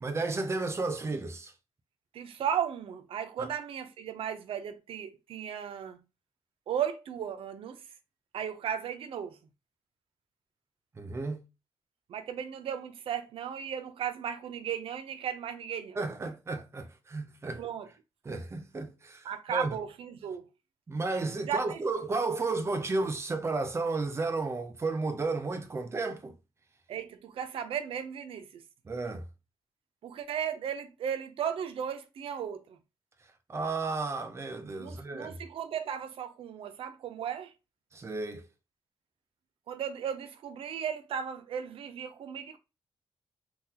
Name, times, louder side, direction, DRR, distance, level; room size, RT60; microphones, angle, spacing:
voice 1, 0.0-1.5 3.4-3.5 11.0-11.4 16.0-17.6 18.2-19.8 20.9-26.4 28.8-29.2 33.5-35.3 37.9-38.5, right 3 dB, 30° right, 0.6 m, -33 dB
voice 2, 2.1-6.0 6.7-7.8 8.3-9.4 12.1-16.0 17.6-17.9 19.2-20.5 21.4-21.8 26.9-28.6 30.0-32.8 34.8-37.5 39.7-42.6, right 8 dB, 75° right, 0.5 m, -35 dB
3.8 x 2.3 x 2.8 m
cardioid pair, 120°, 9 cm